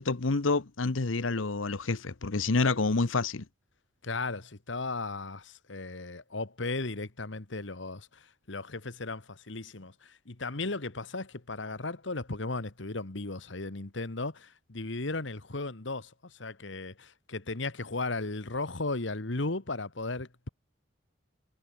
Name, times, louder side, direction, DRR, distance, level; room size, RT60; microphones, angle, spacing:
voice 1, 0.0-3.4, left 3 dB, 85° left, 1.0 m, -28 dB
voice 2, 4.0-20.5, left 3 dB, 70° left, 1.6 m, -36 dB
head